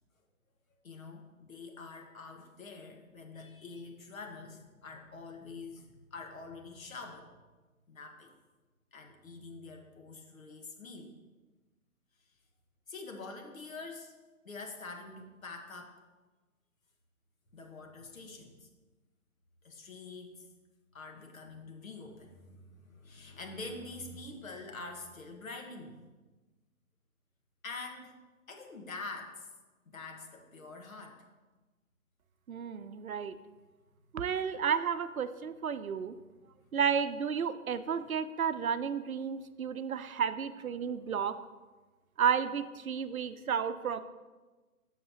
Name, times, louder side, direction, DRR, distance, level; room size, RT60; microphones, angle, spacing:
voice 1, 0.8-7.3 7.9-8.3 8.9-11.1 12.9-14.1 14.4-16.0 17.5-18.7 19.6-20.4 20.9-26.0 27.6-28.1 28.5-29.5 29.9-31.3, left 3 dB, 65° left, 3 dB, 1.5 m, -46 dB
voice 2, 32.5-33.4 34.1-36.1 36.7-41.4 42.2-44.0, right 7 dB, 70° right, 12 dB, 0.6 m, -32 dB
11.0 x 6.5 x 2.9 m, 1.2 s
figure-of-eight pair, 140°, 43 cm